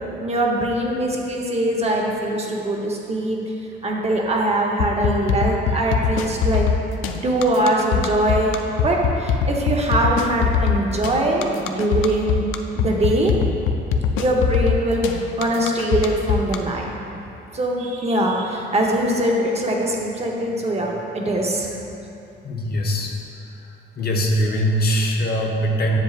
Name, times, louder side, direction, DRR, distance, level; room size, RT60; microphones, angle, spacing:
voice 1, 0.2-3.4 3.8-6.7 7.2-12.4 12.8-13.4 14.2-16.9 17.5-21.8, right 1 dB, 30° right, -1 dB, 0.9 m, -22 dB
sound 1, 4.8-16.6, left 6 dB, 90° left, 0.4 m, -21 dB
voice 2, 22.4-23.1 24.0-26.0, equal, 55° left, 0 dB, 0.9 m, -21 dB
7.4 x 7.1 x 2.5 m, 2.9 s
cardioid pair, 90°, 20 cm